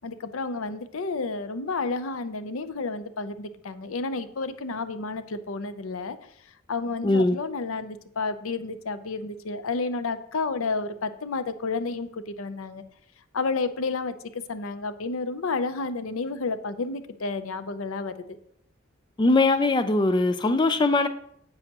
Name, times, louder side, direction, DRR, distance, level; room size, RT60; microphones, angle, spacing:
voice 1, 0.0-6.2 6.7-12.8 13.3-14.1 14.5-18.1, left 3 dB, 80° left, 0.6 m, -31 dB
voice 2, 7.0-7.4 19.2-21.1, left 2 dB, 20° left, 0.3 m, -21 dB
9.8 x 7.7 x 2.9 m
head